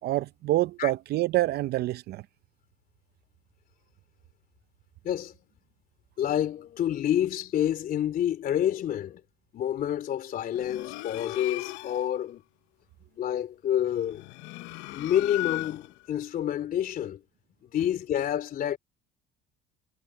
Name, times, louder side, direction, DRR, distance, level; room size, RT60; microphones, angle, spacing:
voice 1, 0.0-2.2, right 16 dB, 60° right, 0.6 m, -26 dB
voice 2, 5.0-5.4 6.2-9.2 9.5-12.4 13.1-14.2 14.9-17.2 17.6-18.8, left 10 dB, 50° left, 3.2 m, -28 dB
sound 1, 10.5-12.1 14.0-16.1, left 22 dB, 80° left, 0.8 m, -37 dB
cardioid pair, 105°, 19 cm